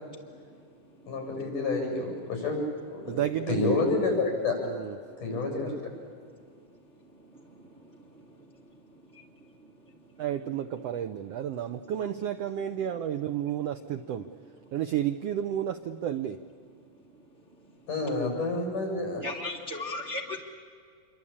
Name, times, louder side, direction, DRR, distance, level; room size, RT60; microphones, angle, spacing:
voice 1, 1.1-2.6 2.9-3.2 3.5-4.6 5.2-5.7 17.9-19.2, left 3 dB, 70° left, 2 dB, 8.6 m, -28 dB
voice 2, 3.1-3.7 4.6-5.0 5.3-5.8 10.2-14.2 14.7-16.4, right 10 dB, 75° right, 9 dB, 1.5 m, -32 dB
voice 3, 19.2-20.4, left 2 dB, 25° right, 0 dB, 1.8 m, -35 dB
28.0 x 24.0 x 8.7 m, 2.1 s
omnidirectional pair, 3.7 m